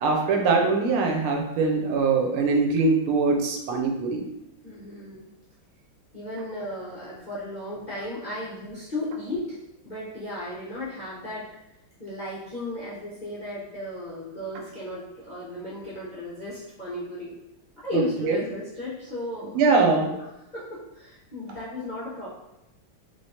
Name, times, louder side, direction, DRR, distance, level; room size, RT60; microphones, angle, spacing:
voice 1, 0.0-4.2 17.9-18.4 19.5-20.1, right 4 dB, 85° right, 2 dB, 1.5 m, -22 dB
voice 2, 4.6-5.3 6.1-9.6 9.8-11.4 12.0-17.3 17.8-22.3, left 1 dB, 65° left, -9 dB, 0.4 m, -35 dB
3.6 x 3.3 x 2.7 m, 0.90 s
omnidirectional pair, 2.3 m